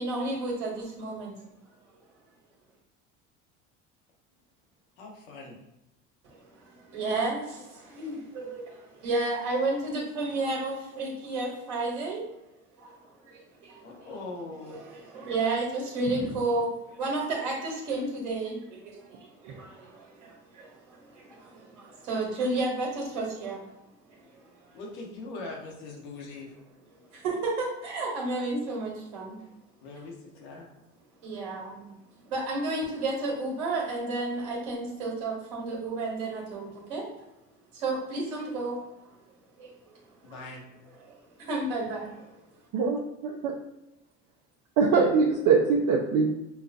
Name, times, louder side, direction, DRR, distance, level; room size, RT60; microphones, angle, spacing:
voice 1, 0.0-1.3 6.2-12.2 12.8-12.9 13.3-14.1 14.6-23.7 24.1-24.7 27.1-29.4 31.2-31.9 32.3-37.0 37.7-38.8 39.6-39.7 41.0-42.2, right 2 dB, 85° right, -4 dB, 1.3 m, -32 dB
voice 2, 5.0-5.6 13.8-14.8 24.7-26.5 29.8-30.7 40.2-40.6, left 3 dB, 80° left, -1 dB, 1.3 m, -41 dB
voice 3, 42.7-43.5 44.8-46.3, right 5 dB, 65° right, -3 dB, 0.8 m, -23 dB
5.6 x 2.4 x 2.6 m, 0.91 s
hypercardioid pair, 75°, 35 cm